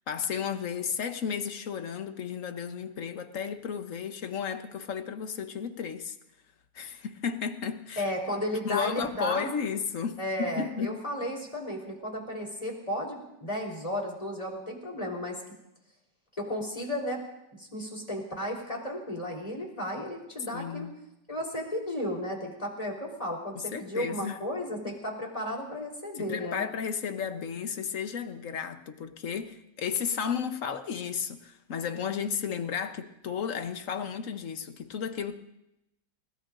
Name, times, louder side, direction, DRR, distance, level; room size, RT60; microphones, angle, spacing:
voice 1, 0.1-6.1 6.7-8.1 8.6-11.0 20.5-20.9 23.5-24.4 24.8-24.9 26.2-35.4, left 7 dB, 55° left, 9 dB, 1.2 m, -33 dB
voice 2, 8.0-9.5 10.2-15.4 16.3-17.2 17.6-20.9 21.3-26.6, left 1 dB, 20° left, -2 dB, 4.0 m, -34 dB
29.5 x 17.5 x 2.6 m, 0.86 s
omnidirectional pair, 1.9 m